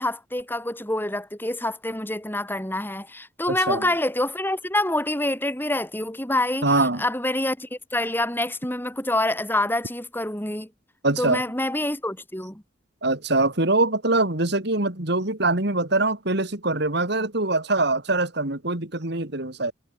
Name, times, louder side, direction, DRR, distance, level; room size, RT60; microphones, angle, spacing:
voice 1, 0.0-10.7 11.2-12.6, left 1 dB, 10° left, 4.9 m, -26 dB
voice 2, 3.5-3.9 6.6-7.0 11.0-11.4 13.0-19.7, right 2 dB, 55° right, 2.8 m, -23 dB
head